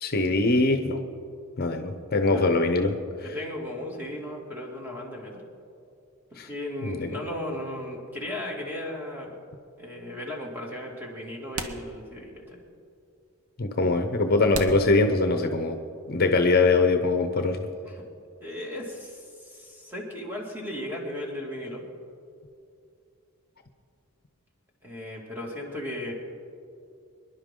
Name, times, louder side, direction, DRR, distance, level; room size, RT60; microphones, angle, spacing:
voice 1, 0.0-1.0 1.6-3.3 6.4-6.5 6.8-7.0 13.6-15.8 16.1-17.7, left 3 dB, 45° left, 6 dB, 0.8 m, -23 dB
voice 2, 3.2-5.4 6.3-9.4 9.8-12.6 17.9-18.0 18.4-21.8 24.8-26.1, left 1 dB, 10° right, -2 dB, 2.4 m, -36 dB
sound 1, 9.7-9.8 10.9-11.0 11.5-12.5 12.8-12.9 13.6-13.7 14.5-15.7, right 3 dB, 85° right, 1.1 m, -37 dB
25.0 x 11.0 x 3.8 m, 2.5 s
head